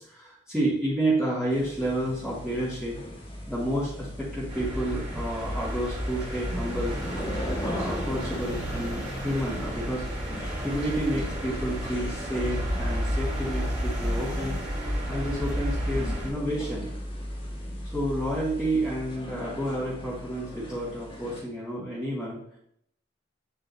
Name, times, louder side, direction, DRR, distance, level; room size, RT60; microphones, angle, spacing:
voice 1, 0.1-2.9 3.5-7.0 7.6-10.0 10.6-14.6 15.1-16.9 17.8-22.4, right 1 dB, 5° right, -11 dB, 2.2 m, -30 dB
sound 1, 1.5-21.4, equal, 30° left, 1.8 m, -38 dB
sound 2, 4.5-16.3, equal, 35° right, 3.5 m, -32 dB
8.6 x 7.7 x 2.8 m, 0.70 s
head